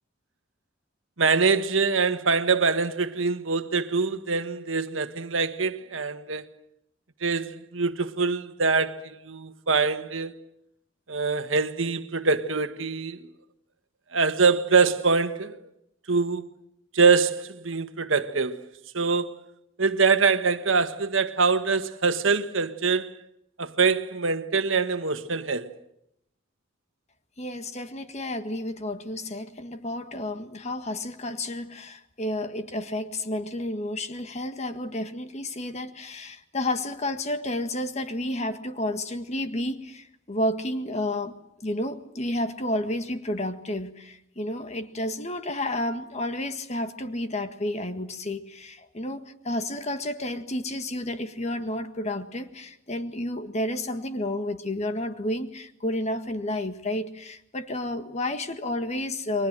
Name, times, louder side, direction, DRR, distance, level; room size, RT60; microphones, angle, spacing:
voice 1, 1.2-6.4 7.2-10.4 11.1-13.3 14.1-15.6 16.1-16.5 16.9-18.6 18.9-19.4 19.8-23.2 23.6-25.7, right 4 dB, 80° right, 1.5 m, -24 dB
voice 2, 27.4-41.3 41.6-59.5, left 1 dB, 35° left, 1.7 m, -31 dB
30.0 x 23.5 x 7.6 m
head